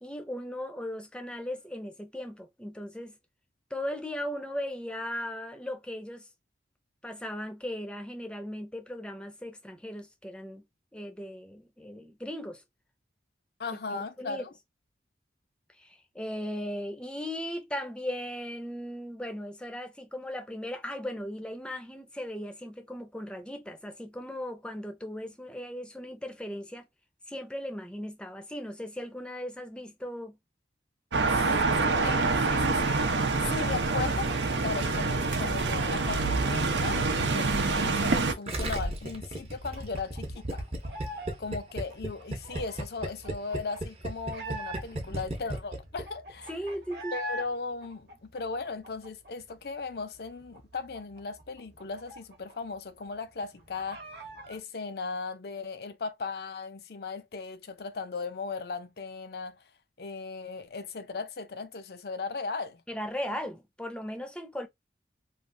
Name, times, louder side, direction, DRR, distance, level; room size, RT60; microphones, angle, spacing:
voice 1, 0.0-3.1 3.7-6.3 7.0-10.6 10.9-12.6 13.9-14.4 15.7-26.9 27.3-30.4 46.5-47.2 62.9-64.7, equal, 5° left, 0.5 m, -37 dB
voice 2, 13.6-14.5 31.3-31.4 32.0-33.0 33.4-40.5 41.4-46.5 47.1-54.0 54.5-59.6 60.0-62.8, left 4 dB, 60° left, 0.5 m, -37 dB
Car Approach, 31.1-38.3, right 3 dB, 85° right, 0.7 m, -26 dB
Gurgling, 38.5-46.0 46.3-46.4, right 1 dB, 35° right, 0.8 m, -34 dB
sound 1, 39.7-41.4 41.6-45.2 45.6-45.7 45.8-47.5 47.8-49.5 49.8-50.0 50.3-52.7 53.0-53.1 53.4-54.6, right 1 dB, 60° right, 0.9 m, -43 dB
3.2 x 2.4 x 2.6 m
head